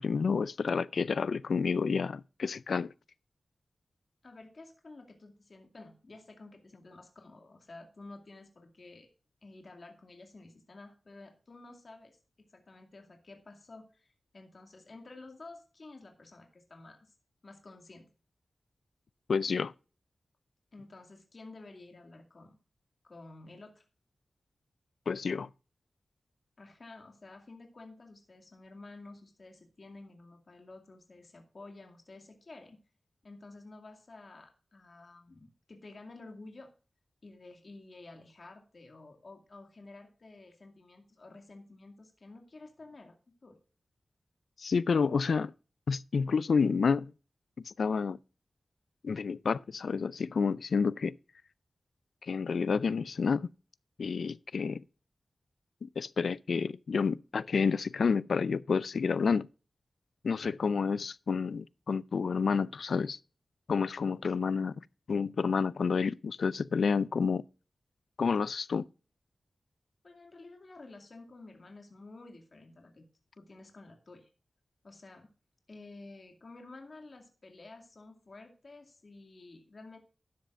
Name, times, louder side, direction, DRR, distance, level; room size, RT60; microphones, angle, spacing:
voice 1, 0.0-2.9 19.3-19.7 25.1-25.5 44.6-45.5 45.9-47.1 47.7-48.2 49.0-51.2 52.2-53.5 54.0-54.8 55.8-59.5 60.2-63.2 63.7-64.7 65.1-67.4 68.2-68.8, left 5 dB, 80° left, 0.4 m, -29 dB
voice 2, 4.2-9.1 9.4-17.0 17.4-18.1 20.7-22.6 23.0-23.8 26.6-32.8 33.2-36.7 37.2-43.2 43.4-43.6 70.0-73.1 73.3-74.3 74.8-75.3 75.7-80.0, left 2 dB, 50° left, 2.3 m, -51 dB
13.0 x 10.5 x 2.5 m
wide cardioid pair, 115°, 0 cm